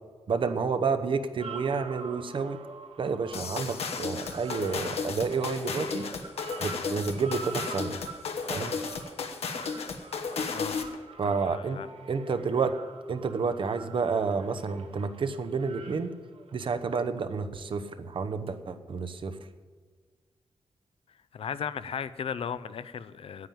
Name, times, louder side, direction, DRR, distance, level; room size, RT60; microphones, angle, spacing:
voice 1, 0.3-2.6 3.0-6.1 6.6-8.0 8.5-8.7 11.2-11.8 12.1-12.7 13.1-16.1 16.5-19.3, right 5 dB, 55° right, 9 dB, 0.9 m, -30 dB
sound 1, 1.4-17.0 18.5-18.6, right 4 dB, 75° right, 1.3 m, -46 dB
sound 2, 3.3-11.0, left 5 dB, 90° left, 1.2 m, -34 dB
voice 2, 11.4-11.9 21.3-23.5, left 7 dB, 70° left, 14 dB, 0.5 m, -36 dB
9.6 x 8.9 x 9.3 m, 1.5 s
wide cardioid pair, 130°, 10 cm